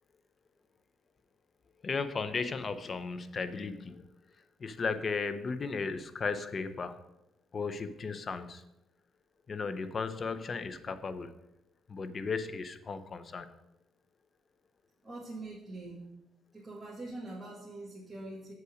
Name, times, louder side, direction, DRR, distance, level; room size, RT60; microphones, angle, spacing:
voice 1, 1.8-4.0 4.6-7.0 7.5-8.6 9.5-11.4 11.9-13.5, left 4 dB, 40° left, 11 dB, 0.7 m, -35 dB
voice 2, 15.0-16.1 16.5-18.5, right 2 dB, 15° right, -6 dB, 1.9 m, -43 dB
7.6 x 5.6 x 5.1 m, 0.88 s
cardioid pair, 90°, 0 cm